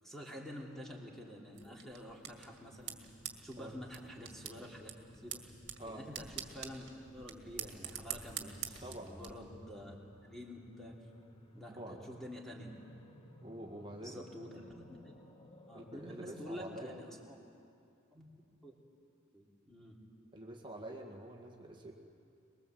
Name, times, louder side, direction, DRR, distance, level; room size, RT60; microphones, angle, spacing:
voice 1, 0.0-3.0 3.4-4.9 5.2-5.4 5.9-10.0 10.2-11.0 11.5-12.7 14.0-15.2 15.7-17.4 18.1-18.7 19.3-20.0, equal, ahead, -2 dB, 3.2 m, -48 dB
sound 1, 1.5-9.3, right 9 dB, 60° right, 2.0 m, -47 dB
sound 2, 2.3-16.8, equal, 25° left, 1.5 m, -58 dB
voice 2, 8.8-9.2 11.8-12.0 13.4-14.3 14.6-14.7 15.7-17.0 20.3-21.9, right 1 dB, 25° right, 0 dB, 1.9 m, -47 dB
23.5 x 21.5 x 7.9 m, 2.5 s
head